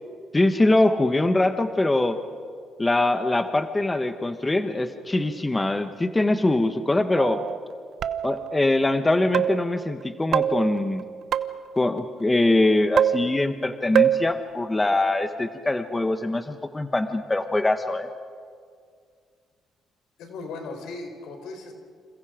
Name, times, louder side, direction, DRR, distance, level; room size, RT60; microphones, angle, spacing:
voice 1, 0.3-2.2 2.8-7.4 8.2-11.0 11.8-18.1, left 2 dB, 20° left, 8 dB, 1.3 m, -23 dB
sound 1, 7.2-7.6 8.0-8.6 9.3-9.8 10.3-11.8 13.0-13.7 13.9-14.3, right 9 dB, 70° right, 0.9 m, -24 dB
voice 2, 20.2-21.7, left 3 dB, 85° left, 5 dB, 4.4 m, -37 dB
29.0 x 28.0 x 5.1 m, 2.1 s
cardioid pair, 90°, 0 cm